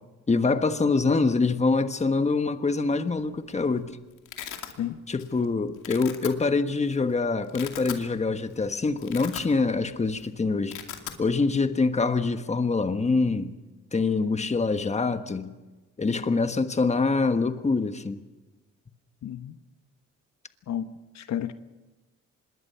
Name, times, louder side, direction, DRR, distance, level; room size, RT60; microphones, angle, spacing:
voice 1, 0.3-4.0 5.1-10.8 11.2-13.5 13.9-15.5 16.0-18.2, left 4 dB, 20° left, 1.3 m, -25 dB
Domestic sounds home sounds, 3.2-3.6 3.9-4.7 5.2-5.4 5.7-6.3 6.9-7.0 7.4-8.0 8.5-8.6 8.9-9.8 10.1-10.3 10.5-11.2, left 11 dB, 85° left, 2.5 m, -39 dB
voice 2, 19.2-19.5 20.7-20.9 21.1-21.5, left 10 dB, 65° left, 1.1 m, -31 dB
25.5 x 21.0 x 5.7 m
cardioid pair, 90°, 30 cm